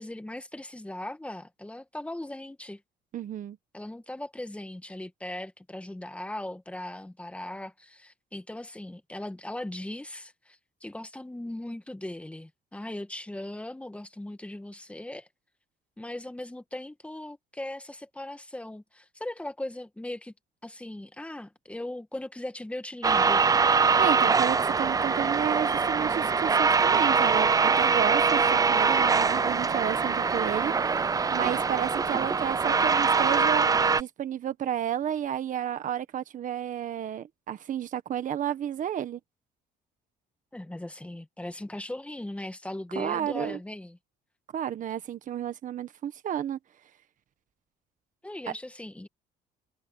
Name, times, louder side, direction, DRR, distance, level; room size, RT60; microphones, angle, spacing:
voice 1, 0.0-2.8 3.7-15.3 16.0-20.3 20.6-23.4 40.5-44.0 48.2-49.1, left 1 dB, 5° left, 1.8 m, -38 dB
voice 2, 3.1-3.6 24.0-30.7 31.3-33.7 34.0-39.2 42.9-43.6 44.5-46.6, right 10 dB, 50° right, 1.4 m, -31 dB
sound 1, 23.0-34.0, right 5 dB, 20° right, 0.5 m, -23 dB
cardioid pair, 110°, 17 cm